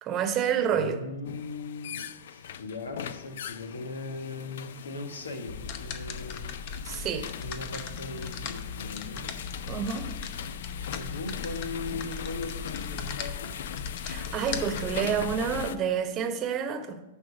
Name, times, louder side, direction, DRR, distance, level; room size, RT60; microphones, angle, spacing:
voice 1, 0.0-1.0 6.8-7.3 9.7-10.1 14.0-17.0, right 7 dB, 35° right, 1.0 m, -29 dB
voice 2, 0.7-6.5 7.4-9.4 10.9-13.6, left 3 dB, 90° left, 1.2 m, -39 dB
sound 1, 1.2-15.8, left 9 dB, 70° left, 0.4 m, -41 dB
sound 2, 5.5-15.7, left 6 dB, 55° left, 0.8 m, -38 dB
10.5 x 3.8 x 6.2 m
hypercardioid pair, 115°, 0 cm